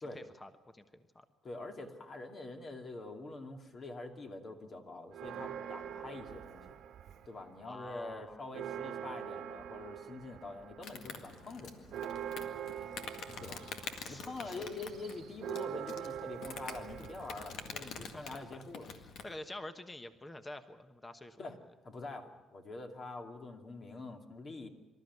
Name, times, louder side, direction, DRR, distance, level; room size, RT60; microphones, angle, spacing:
voice 1, 0.1-1.2 7.6-8.5 13.2-13.4 14.0-14.8 17.8-18.6 19.2-21.4, left 1 dB, 20° left, 9 dB, 1.2 m, -48 dB
voice 2, 1.4-6.8 7.3-12.0 12.7-12.9 13.4-13.7 14.1-18.9 21.4-21.6 21.8-24.7, left 2 dB, 45° left, 4 dB, 2.6 m, -45 dB
Church bell, 5.1-7.5 7.9-8.0 8.3-18.3, right 9 dB, 75° right, 1.3 m, -44 dB
Insect, 10.8-19.3, left 5 dB, 80° left, 1.9 m, -47 dB
25.0 x 13.0 x 9.6 m, 1.2 s
cardioid pair, 90°, 0 cm